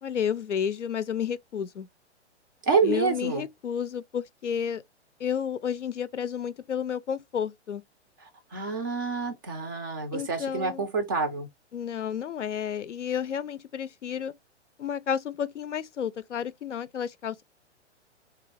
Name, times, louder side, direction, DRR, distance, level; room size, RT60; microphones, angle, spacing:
voice 1, 0.0-1.9 2.8-4.8 5.2-7.8 10.1-10.9 11.7-14.3 14.8-17.4, left 8 dB, 90° left, 0.5 m, -31 dB
voice 2, 2.6-3.4 8.5-11.5, right 5 dB, 20° right, 0.3 m, -27 dB
3.3 x 2.4 x 3.3 m
figure-of-eight pair, 115°, 35 cm